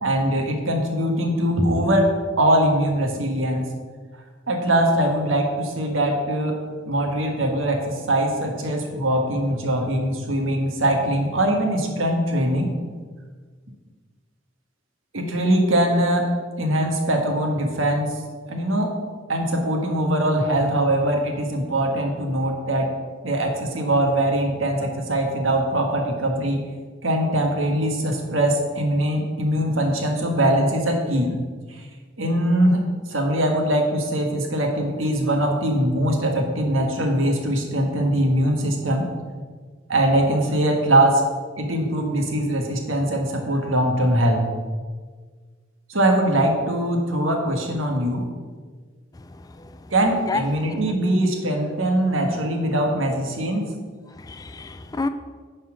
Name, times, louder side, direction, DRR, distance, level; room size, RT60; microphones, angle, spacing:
voice 1, 0.0-2.0 2.4-3.7 4.5-6.5 6.9-12.7 15.1-16.2 16.6-18.1 18.5-18.9 19.3-22.9 23.2-26.6 27.0-31.3 31.8-31.9 32.2-32.8 33.1-39.0 39.9-41.2 41.6-44.4 45.9-48.2 49.9-53.7, right 1 dB, 80° right, 2 dB, 1.5 m, -22 dB
voice 2, 54.2-55.1, left 3 dB, 20° left, 10 dB, 0.4 m, -29 dB
9.6 x 4.3 x 6.2 m, 1.5 s
head